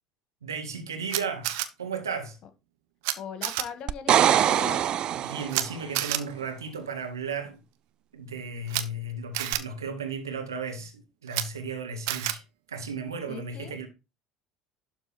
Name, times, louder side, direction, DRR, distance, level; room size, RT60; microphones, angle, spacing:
voice 1, 0.4-1.5 1.8-2.4 4.6-4.7 5.1-7.6 8.1-12.4 12.7-13.9, right 4 dB, 90° right, 1.8 m, -35 dB
Camera, 1.1-1.7 3.0-3.1 3.4-3.6 5.5-5.6 5.9-6.2 8.7-8.8 9.3-9.6 11.3-11.4 12.1-12.3, right 15 dB, 70° right, 0.9 m, -28 dB
voice 2, 3.2-4.9 13.3-13.8, left 7 dB, 50° left, 1.7 m, -39 dB
sound 1, 3.9-5.8 9.5-9.6, right 11 dB, 45° right, 0.4 m, -23 dB
12.0 x 4.1 x 4.4 m
hypercardioid pair, 70°, 2 cm